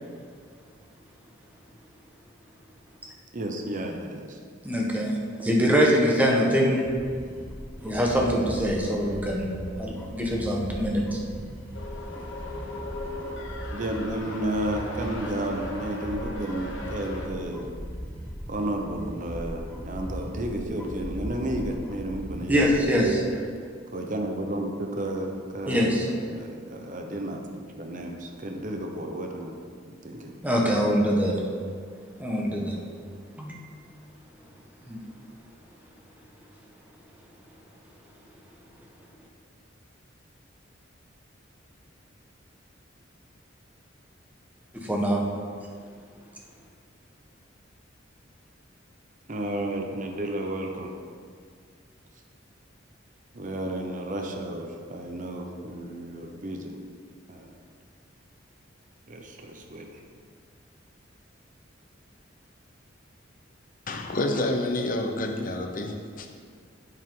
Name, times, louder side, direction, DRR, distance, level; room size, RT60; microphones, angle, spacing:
voice 1, 3.3-4.4 13.7-17.7 18.5-22.7 23.9-26.0 26.3-29.6 30.0-30.4 49.3-50.9 53.3-56.8 57.3-57.5 59.1-60.0, right 1 dB, 45° right, 0.9 m, -32 dB
voice 2, 4.6-6.9 7.8-11.2 22.5-23.2 25.7-26.1 30.4-31.4 32.2-32.7 33.4-33.5 34.9-35.0 44.7-45.2, equal, 10° right, 1.4 m, -24 dB
sound 1, 6.7-23.1, equal, 10° left, 0.9 m, -39 dB
sound 2, 11.7-17.3, left 1 dB, 75° left, 1.3 m, -38 dB
voice 3, 63.9-66.4, left 1 dB, 45° left, 0.9 m, -28 dB
10.5 x 8.0 x 3.9 m
head